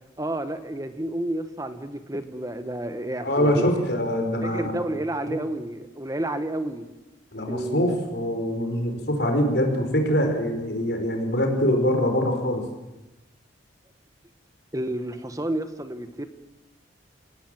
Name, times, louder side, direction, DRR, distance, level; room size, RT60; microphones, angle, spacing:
voice 1, 0.2-3.7 4.4-6.8 7.5-7.9 14.7-16.3, right 1 dB, 20° right, 10 dB, 1.4 m, -30 dB
voice 2, 3.2-4.7 5.3-5.4 7.3-12.6, equal, 60° left, 4 dB, 4.6 m, -24 dB
25.5 x 18.5 x 7.6 m, 1.0 s
head